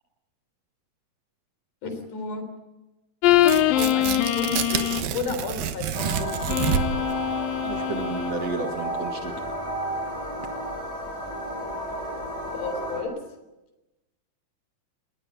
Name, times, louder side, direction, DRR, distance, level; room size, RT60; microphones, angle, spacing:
voice 1, 1.8-2.5 3.7-6.6 12.5-13.2, left 3 dB, 65° left, 8 dB, 5.1 m, -33 dB
sound 1, 3.2-5.2 6.5-8.3, left 12 dB, 85° left, 2.9 m, -23 dB
Tearing, 3.4-7.1, right 9 dB, 90° right, 3.0 m, -28 dB
sound 2, 5.9-13.0, right 1 dB, 20° left, 7.3 m, -32 dB
voice 2, 7.6-9.4, right 3 dB, 50° right, 4 dB, 2.8 m, -32 dB
20.0 x 20.0 x 9.0 m, 1.0 s
omnidirectional pair, 4.0 m